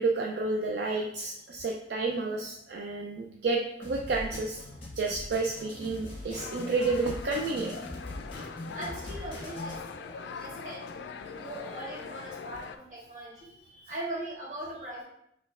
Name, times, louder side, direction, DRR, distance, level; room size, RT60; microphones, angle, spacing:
voice 1, 0.0-4.6 5.0-7.9 13.7-13.9, right 3 dB, 65° right, 1 dB, 0.4 m, -30 dB
sound 1, 3.8-9.8, left 1 dB, 30° left, 1.2 m, -42 dB
sound 2, 6.4-12.8, left 5 dB, 80° left, 0.3 m, -42 dB
voice 2, 8.7-13.5 13.9-15.0, right 1 dB, 45° right, -6 dB, 1.5 m, -40 dB
6.1 x 3.1 x 2.3 m, 0.75 s
head